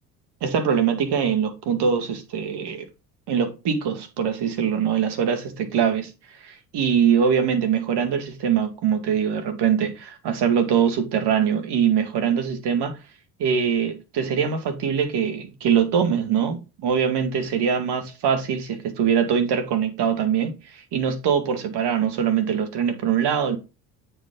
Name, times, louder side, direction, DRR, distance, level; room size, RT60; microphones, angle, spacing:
voice 1, 0.4-2.9 3.3-6.1 6.4-13.0 13.4-23.6, right 7 dB, 60° right, 2.2 m, -23 dB
8.7 x 5.4 x 3.8 m
hypercardioid pair, 70°, 46 cm